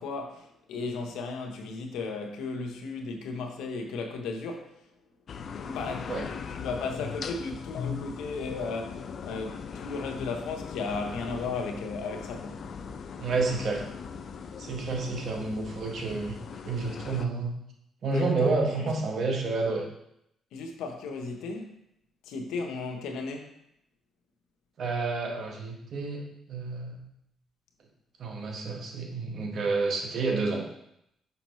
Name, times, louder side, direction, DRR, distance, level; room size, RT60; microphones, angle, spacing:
voice 1, 0.0-4.8 5.6-6.1 6.5-12.7 18.1-18.9 20.5-21.7 22.3-23.5, left 4 dB, 90° left, 0.8 m, -35 dB
sound 1, 5.3-17.3, left 6 dB, 55° left, 0.4 m, -39 dB
voice 2, 13.2-13.8 14.6-16.3 16.7-17.5 18.0-19.9 24.8-27.0 28.2-30.6, right 3 dB, 60° right, 1.3 m, -29 dB
5.8 x 5.4 x 3.1 m
cardioid pair, 90°, 0 cm